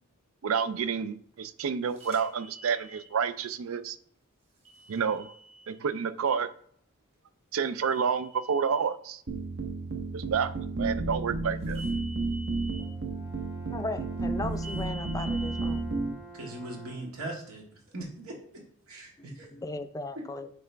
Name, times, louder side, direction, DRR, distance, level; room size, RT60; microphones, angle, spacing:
voice 1, 0.4-4.0 4.9-5.3 5.7-6.5 7.5-9.2 10.1-11.8, right 6 dB, 70° right, 14 dB, 0.4 m, -29 dB
sound 1, 2.0-3.1 4.6-5.7 7.8-8.8 11.7-12.8 14.6-15.7, right 2 dB, 35° right, 2.1 m, -46 dB
sound 2, 9.3-16.1, right 3 dB, 55° right, 0.8 m, -32 dB
Brass instrument, 12.8-17.2, right 2 dB, 15° right, 1.0 m, -48 dB
voice 2, 13.7-15.9 19.2-20.5, left 2 dB, 15° left, 9 dB, 0.4 m, -37 dB
voice 3, 16.3-17.6 17.9-18.4 18.9-19.5 20.2-20.3, right 1 dB, 90° right, -1 dB, 1.8 m, -39 dB
9.4 x 3.3 x 3.4 m, 0.62 s
head